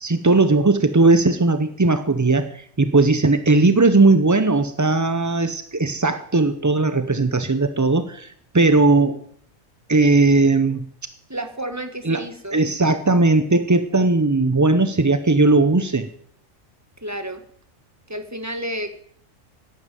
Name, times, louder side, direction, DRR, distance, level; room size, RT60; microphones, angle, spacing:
voice 1, 0.0-9.2 9.9-10.8 12.0-12.2 12.5-16.1, right 3 dB, 30° right, 10 dB, 0.3 m, -18 dB
voice 2, 11.3-12.6 17.0-17.4 18.1-19.0, right 1 dB, 15° right, 8 dB, 1.3 m, -31 dB
11.5 x 9.8 x 9.1 m, 0.63 s
omnidirectional pair, 1.4 m